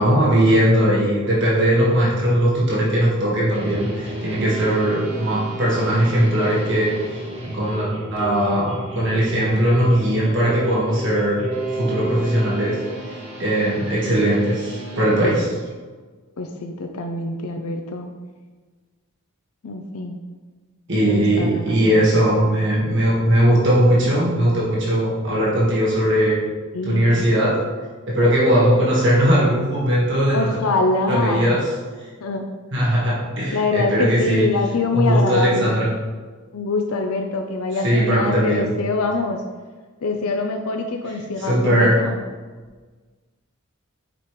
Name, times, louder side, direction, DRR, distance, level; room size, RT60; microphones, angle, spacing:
voice 1, 0.0-6.9 7.4-11.5 11.7-13.1 13.4-15.5 20.9-26.4 26.8-27.7 28.1-30.5 31.1-31.7 32.7-34.5 34.9-35.9 37.8-38.7 41.4-42.0, right 1 dB, 55° right, -6 dB, 1.7 m, -19 dB
sound 1, 3.5-15.4, right 1 dB, 25° right, 1.2 m, -32 dB
voice 2, 16.4-18.1 19.6-20.2 21.1-22.0 26.7-27.3 30.3-31.5 32.2-32.4 33.5-35.8 36.5-39.4 40.0-42.2, left 3 dB, 75° left, 4 dB, 0.6 m, -24 dB
8.4 x 5.1 x 3.1 m, 1.4 s
head